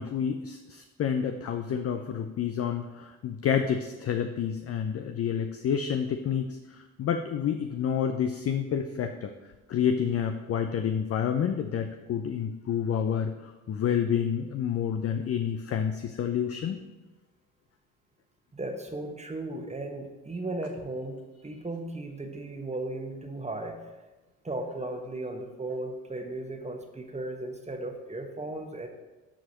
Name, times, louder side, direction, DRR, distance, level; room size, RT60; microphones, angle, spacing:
voice 1, 0.0-9.3 9.7-16.8, left 8 dB, 35° left, 7 dB, 0.5 m, -29 dB
voice 2, 18.5-23.8 24.4-28.9, right 2 dB, 15° right, 4 dB, 1.3 m, -36 dB
12.5 x 4.7 x 3.0 m, 1.1 s
hypercardioid pair, 60°, 40 cm